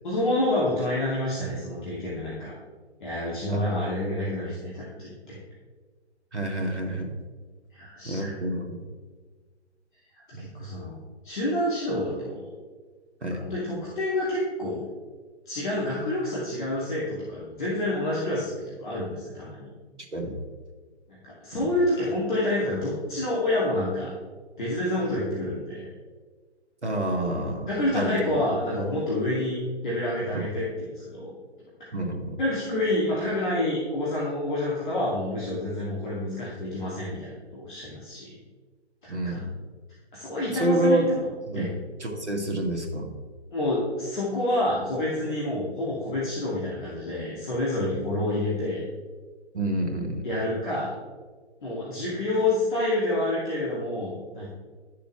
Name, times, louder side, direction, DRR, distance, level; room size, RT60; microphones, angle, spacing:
voice 1, 0.0-2.5 3.0-5.4 7.7-8.3 10.4-11.0 11.2-12.5 13.4-14.9 15.5-19.7 21.1-24.1 24.6-25.9 27.7-29.6 29.8-31.3 32.4-38.3 39.0-39.4 40.1-41.2 41.5-41.7 43.5-48.8 50.2-50.9 51.6-54.5, left 1 dB, 45° left, -7 dB, 2.3 m, -28 dB
voice 2, 6.3-7.1 8.0-8.8 10.3-10.5 13.2-13.4 20.1-20.3 21.5-21.7 26.8-28.1 30.3-30.5 31.9-32.4 39.1-39.5 40.5-41.1 41.5-41.6 42.0-43.1 49.5-50.3, right 1 dB, 85° right, 3 dB, 1.7 m, -28 dB
11.5 x 6.8 x 3.2 m, 1.5 s
figure-of-eight pair, 135°, 34 cm